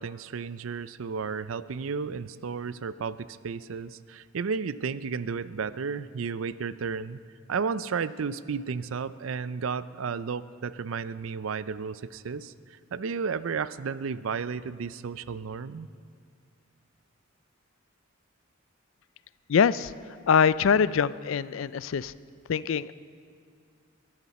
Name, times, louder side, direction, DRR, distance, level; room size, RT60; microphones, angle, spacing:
voice 1, 0.0-7.2 7.5-12.5 12.9-15.9, right 5 dB, 80° right, 16 dB, 0.5 m, -33 dB
voice 2, 19.5-19.9 20.3-22.1 22.5-22.9, left 6 dB, 70° left, 17 dB, 0.4 m, -23 dB
22.5 x 14.0 x 4.2 m, 2.3 s
head